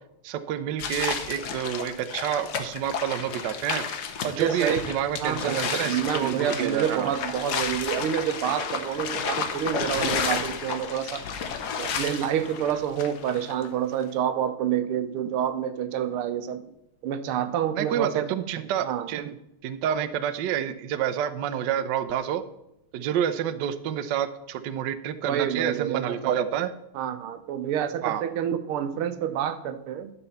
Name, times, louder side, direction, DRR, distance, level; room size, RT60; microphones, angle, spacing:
voice 1, 0.2-3.8 4.2-7.1 17.7-19.4 19.6-22.4 22.9-26.7 28.0-28.2, right 9 dB, 70° right, 11 dB, 1.1 m, -28 dB
sound 1, 0.8-13.7, left 6 dB, 60° left, 1.3 m, -32 dB
voice 2, 4.4-4.9 5.2-11.3 11.8-16.7 17.0-18.3 18.8-19.1 25.2-26.4 26.9-30.1, right 9 dB, 85° right, 11 dB, 1.7 m, -28 dB
11.0 x 4.4 x 6.9 m, 0.84 s
omnidirectional pair, 2.3 m